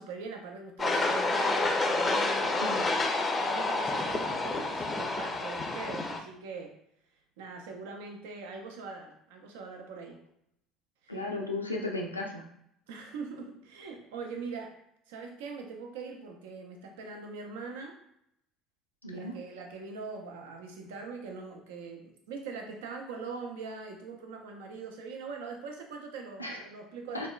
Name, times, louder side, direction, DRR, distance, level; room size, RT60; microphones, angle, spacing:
voice 1, 0.0-2.7 3.4-6.7 7.4-10.2 11.0-11.2 12.9-14.8 15.1-18.0 19.1-27.3, right 4 dB, 70° right, 3 dB, 0.5 m, -42 dB
sound 1, 0.8-6.2, left 2 dB, 25° left, 0.4 m, -29 dB
voice 2, 11.1-12.4 19.0-19.4 26.4-26.6 27.1-27.3, left 2 dB, 90° left, -1 dB, 0.4 m, -35 dB
3.5 x 2.1 x 2.3 m, 0.74 s
figure-of-eight pair, 60°, 0 cm